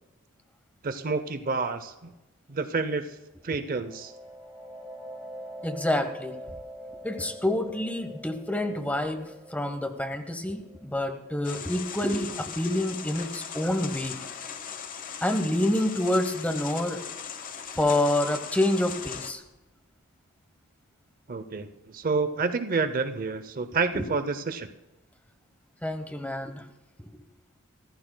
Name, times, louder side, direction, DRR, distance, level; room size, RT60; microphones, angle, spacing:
voice 1, 0.8-2.1 2.5-3.0 3.4-4.1 21.3-24.7, right 4 dB, 40° right, 10 dB, 0.6 m, -29 dB
sound 1, 3.5-12.9, equal, 10° right, 4.1 m, -45 dB
voice 2, 5.6-6.4 7.0-14.2 15.2-17.0 17.8-19.4 23.9-24.0 25.8-26.6, left 1 dB, 5° left, 8 dB, 0.9 m, -27 dB
sound 2, 11.4-19.3, left 7 dB, 40° left, 0.9 m, -39 dB
26.0 x 14.5 x 2.2 m, 1.0 s
head